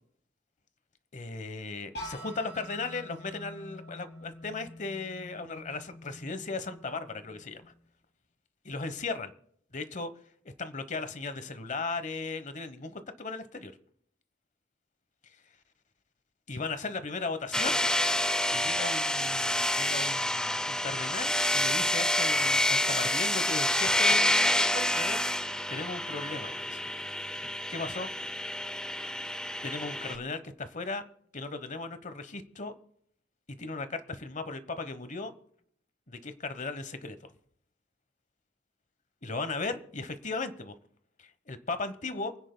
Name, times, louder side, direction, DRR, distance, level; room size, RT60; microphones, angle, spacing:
voice 1, 1.1-7.7 8.6-9.3 9.7-10.1 10.6-13.7 16.5-17.8 18.5-25.2 25.7-26.8 27.7-28.1 29.6-31.0 31.3-32.7 33.6-35.3 36.1-37.2 39.2-40.7 41.2-42.3, left 3 dB, 45° left, 11 dB, 1.1 m, -37 dB
sound 1, 1.9-7.7, equal, 65° left, 3.1 m, -46 dB
sound 2, 17.5-30.2, left 1 dB, 5° left, 0.6 m, -28 dB
28.5 x 9.9 x 2.2 m, 0.66 s
head